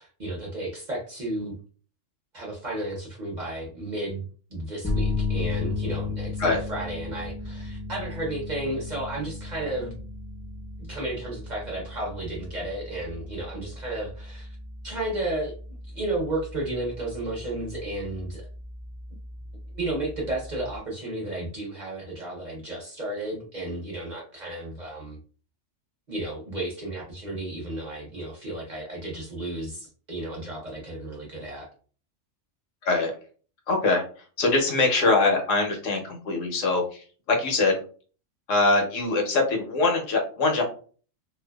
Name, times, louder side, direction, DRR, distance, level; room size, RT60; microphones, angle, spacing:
voice 1, 0.0-1.6 2.3-10.0 10.8-14.6 14.8-15.5 15.9-18.5 19.7-25.2 26.1-31.7, right 1 dB, 45° right, -3 dB, 0.7 m, -33 dB
sound 1, 4.8-20.8, left 3 dB, 15° left, 0.3 m, -35 dB
voice 2, 33.7-34.0 34.4-37.7 38.5-40.6, left 3 dB, 75° left, 2 dB, 1.0 m, -23 dB
2.5 x 2.1 x 2.2 m, 0.41 s
omnidirectional pair, 1.3 m